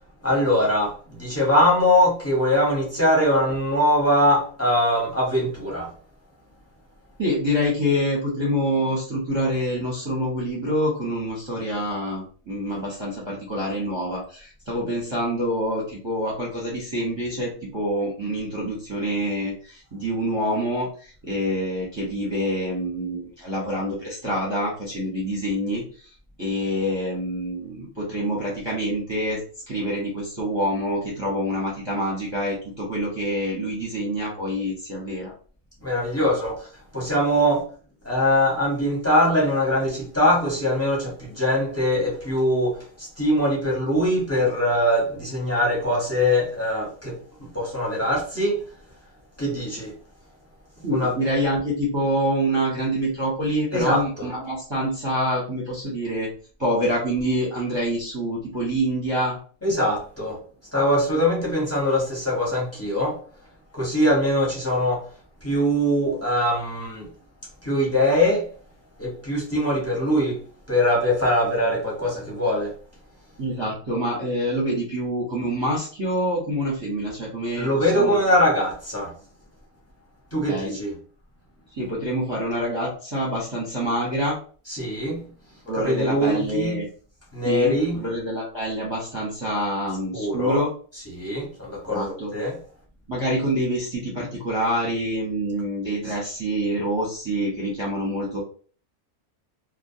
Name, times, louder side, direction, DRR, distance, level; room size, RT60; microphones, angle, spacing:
voice 1, 0.2-5.9 35.8-36.6 36.9-37.6 38.0-47.1 47.4-48.6 49.4-49.9 50.9-51.1 53.7-54.0 59.6-60.4 60.7-63.2 63.7-65.0 65.4-67.1 67.6-68.5 69.0-70.4 70.7-72.7 77.6-79.1 80.3-80.9 84.7-85.2 85.8-86.8 87.3-88.0 90.1-90.6 91.1-92.6, left 1 dB, 15° left, 0.9 m, -22 dB
voice 2, 7.2-25.8 26.4-29.4 29.7-35.3 50.8-56.3 56.6-59.4 73.4-78.2 80.5-80.8 81.7-84.4 85.7-86.9 87.4-90.7 91.9-92.3 93.1-98.4, equal, 25° right, 0.7 m, -26 dB
2.4 x 2.2 x 2.7 m
omnidirectional pair, 1.4 m